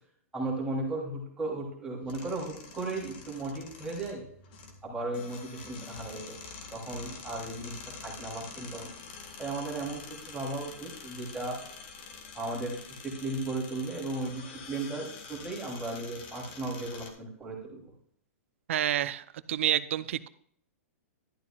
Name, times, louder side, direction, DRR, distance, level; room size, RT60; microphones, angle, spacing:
voice 1, 0.3-4.2 4.8-6.4 6.7-8.9 9.4-11.6 12.3-17.9, right 2 dB, 10° right, 3.1 m, -36 dB
sound 1, 2.0-17.1, left 5 dB, 40° left, 1.9 m, -46 dB
voice 2, 18.7-20.3, right 11 dB, 60° right, 0.6 m, -29 dB
12.0 x 10.5 x 2.4 m
hypercardioid pair, 160°, 8 cm